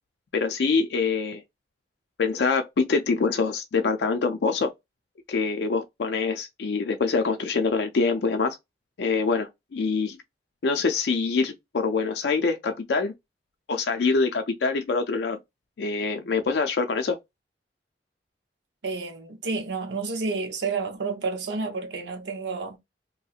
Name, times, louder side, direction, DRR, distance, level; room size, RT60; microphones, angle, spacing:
voice 1, 0.3-1.4 2.2-4.7 5.3-8.6 9.0-10.2 10.6-13.1 13.7-15.4 15.8-17.2, left 4 dB, 65° left, 0.4 m, -25 dB
voice 2, 18.8-22.8, right 4 dB, 80° right, 0.7 m, -30 dB
3.0 x 2.8 x 2.4 m
head